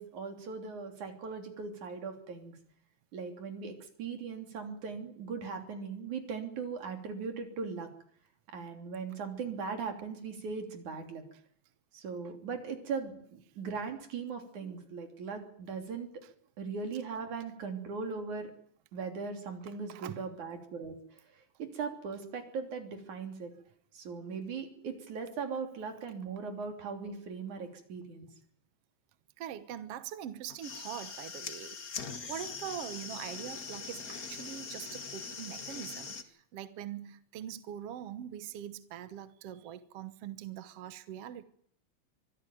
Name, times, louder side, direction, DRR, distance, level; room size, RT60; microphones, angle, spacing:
voice 1, 0.0-2.6 3.1-7.9 8.5-11.2 11.9-16.1 16.6-18.5 18.9-23.5 23.9-28.3, right 5 dB, 85° right, 4.6 m, -39 dB
voice 2, 19.9-20.2 29.4-31.8 32.3-41.4, right 10 dB, 60° right, 1.9 m, -43 dB
sound 1, 30.5-36.2, left 5 dB, 35° left, 1.9 m, -42 dB
24.5 x 15.0 x 9.3 m
omnidirectional pair, 3.3 m